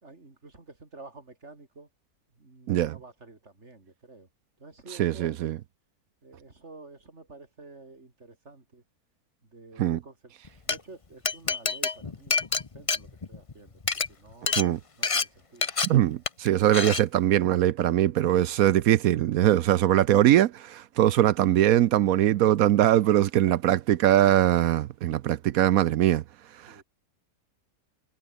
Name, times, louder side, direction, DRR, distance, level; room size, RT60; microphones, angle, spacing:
voice 1, 0.0-1.9 2.4-4.3 4.6-5.4 6.2-8.8 9.4-10.3 10.6-13.8 14.1-14.6 15.0-15.7 22.9-23.1 23.4-23.5 26.6-26.8, right 3 dB, 45° right, 4.1 m, -50 dB
voice 2, 5.0-5.6 9.8-10.0 14.6-14.8 15.8-26.2 26.6-26.8, right 12 dB, 70° right, 1.0 m, -22 dB
Glass, 10.5-10.8 11.3-13.5 13.8-14.1 14.5-14.7 15.0-15.3 15.6-15.9 16.3-16.5 16.7-17.0, left 4 dB, 25° left, 0.8 m, -27 dB
omnidirectional pair, 1.6 m